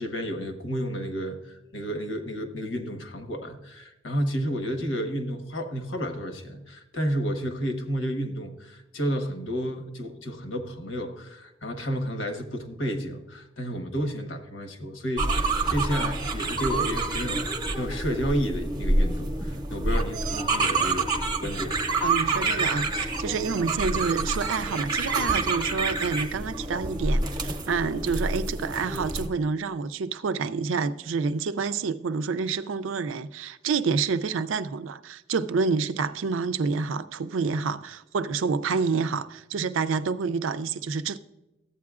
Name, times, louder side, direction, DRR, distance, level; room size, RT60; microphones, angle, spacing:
voice 1, 0.0-21.1 21.4-21.8, equal, 80° left, 1.1 m, -31 dB
sound 1, 15.2-29.3, right 3 dB, 20° right, 0.7 m, -27 dB
voice 2, 22.0-41.2, right 5 dB, 85° right, 0.4 m, -28 dB
14.0 x 8.5 x 2.4 m
head